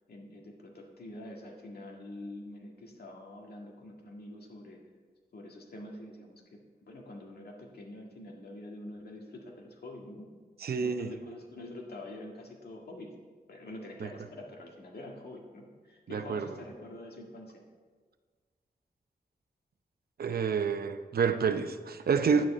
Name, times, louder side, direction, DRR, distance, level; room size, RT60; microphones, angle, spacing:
voice 1, 0.1-4.8 5.3-10.3 10.8-13.1 13.5-17.6, left 1 dB, 80° left, 0 dB, 1.8 m, -46 dB
voice 2, 10.6-11.1 14.0-14.1 16.1-16.5 20.2-22.5, right 6 dB, 75° right, 9 dB, 0.7 m, -28 dB
10.0 x 9.2 x 4.3 m, 1.5 s
wide cardioid pair, 120°, 16 cm